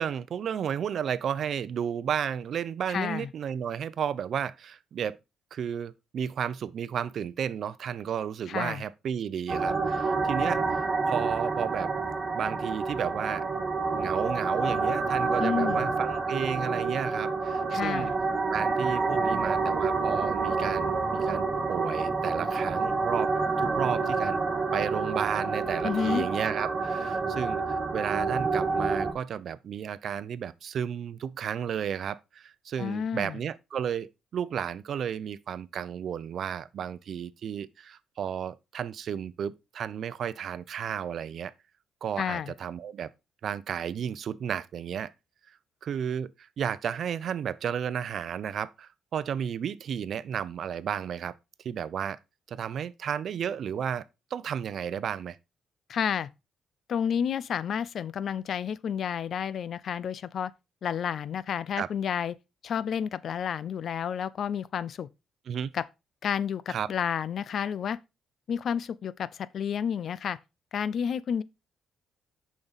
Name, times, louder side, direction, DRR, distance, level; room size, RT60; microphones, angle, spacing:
voice 1, 0.0-5.2 5.5-11.9 12.3-13.5 13.9-18.1 18.5-23.3 23.6-24.4 24.7-41.5 42.0-43.1 43.4-45.1 45.8-51.3 51.6-52.2 52.5-54.0 54.3-55.4 61.7-61.9 65.5-65.7 66.7-66.9, right 8 dB, 60° right, 0.5 m, -33 dB
voice 2, 2.9-3.3 8.5-8.8 15.4-15.9 17.7-18.1 25.8-26.3 32.8-33.4 42.2-42.5 55.9-56.3 56.9-60.5 60.8-62.3 62.6-65.1 65.7-65.8 66.2-68.0 68.5-70.4 70.7-71.4, left 8 dB, 60° left, 0.5 m, -30 dB
sound 1, 9.5-29.1, right 4 dB, 35° right, 1.4 m, -28 dB
7.0 x 5.2 x 4.0 m
cardioid pair, 90°, 0 cm